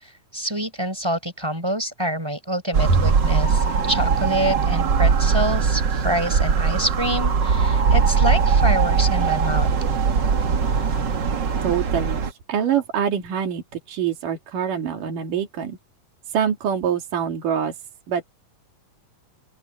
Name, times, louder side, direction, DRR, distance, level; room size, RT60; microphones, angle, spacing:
voice 1, 0.3-9.7, equal, 10° right, 4.3 m, -26 dB
sound 1, 2.7-12.3, right 5 dB, 45° right, 1.6 m, -20 dB
voice 2, 11.6-15.8 16.3-17.8 18.1-18.2, right 8 dB, 85° right, 4.0 m, -25 dB
open air
omnidirectional pair, 3.6 m